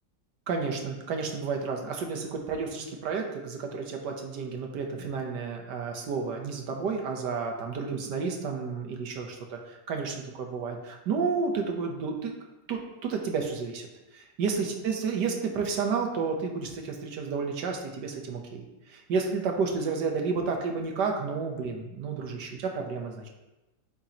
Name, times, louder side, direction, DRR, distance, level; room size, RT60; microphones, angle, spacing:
voice 1, 0.5-12.3 12.7-13.9 14.4-18.6 18.9-23.3, right 5 dB, 70° right, 2 dB, 1.5 m, -31 dB
9.0 x 4.6 x 2.9 m, 1.0 s
omnidirectional pair, 1.9 m